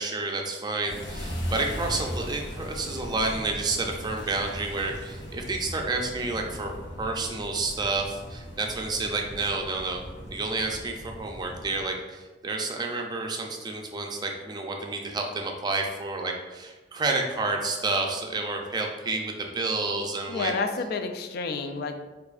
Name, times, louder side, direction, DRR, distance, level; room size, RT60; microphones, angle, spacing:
voice 1, 0.0-6.7 7.0-10.0 10.3-20.5, right 3 dB, 25° right, 2 dB, 0.4 m, -30 dB
sound 1, 0.8-11.9, equal, 90° left, 0.8 m, -38 dB
voice 2, 20.3-22.0, left 4 dB, 60° left, 7 dB, 0.3 m, -30 dB
4.6 x 2.5 x 2.4 m, 1.2 s
head